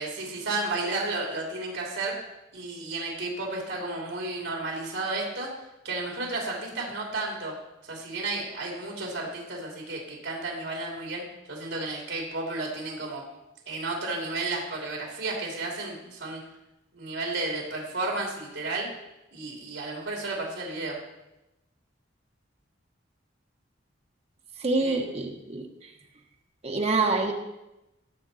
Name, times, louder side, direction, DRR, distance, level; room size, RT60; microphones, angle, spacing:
voice 1, 0.0-2.1 2.5-5.5 5.8-7.5 7.8-11.2 11.5-13.2 13.7-16.4 16.9-18.9 19.3-21.0 24.8-25.0, right 2 dB, 80° right, -1 dB, 3.0 m, -32 dB
voice 2, 24.6-25.6 26.6-27.3, right 3 dB, 35° right, 2 dB, 1.3 m, -26 dB
16.5 x 7.5 x 4.2 m, 0.96 s
head